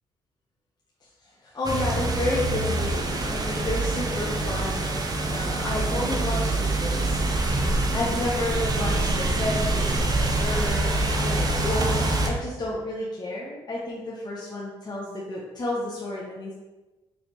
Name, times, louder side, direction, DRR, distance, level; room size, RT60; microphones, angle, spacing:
voice 1, 1.4-4.9 5.2-7.2 7.7-16.5, left 1 dB, 40° left, -5 dB, 0.9 m, -31 dB
sound 1, 1.6-12.3, right 2 dB, 35° right, 0.7 m, -25 dB
4.2 x 3.2 x 3.0 m, 1.1 s
supercardioid pair, 60°, 11 cm